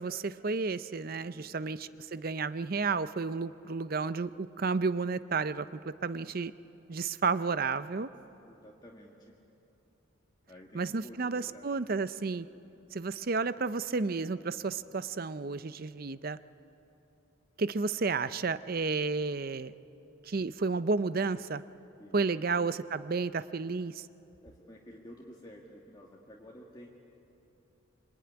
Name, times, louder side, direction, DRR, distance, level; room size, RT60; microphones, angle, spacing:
voice 1, 0.0-6.5 6.9-8.1 10.7-12.5 12.9-16.4 17.6-19.7 20.2-21.6 22.1-24.1, right 4 dB, 45° right, 14 dB, 0.5 m, -32 dB
voice 2, 8.5-9.4 10.5-11.7 22.0-22.5 24.4-26.9, equal, 20° left, -2 dB, 1.8 m, -52 dB
26.0 x 23.5 x 9.7 m, 3.0 s
head